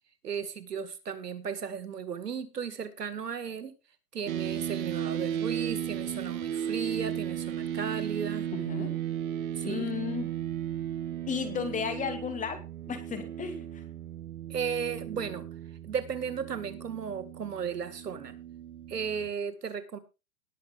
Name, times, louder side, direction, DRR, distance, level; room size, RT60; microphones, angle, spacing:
voice 1, 0.2-3.7 4.1-8.5 9.6-9.9 14.5-15.5 15.8-18.4 18.9-20.0, right 7 dB, 80° right, 11 dB, 2.2 m, -35 dB
sound 1, 4.3-19.3, right 10 dB, 60° right, 1.6 m, -35 dB
voice 2, 8.5-9.0 9.6-10.3 11.3-12.6 12.9-13.8, left 7 dB, 15° left, 8 dB, 2.3 m, -34 dB
19.0 x 6.7 x 3.7 m, 0.29 s
hypercardioid pair, 125°, 47 cm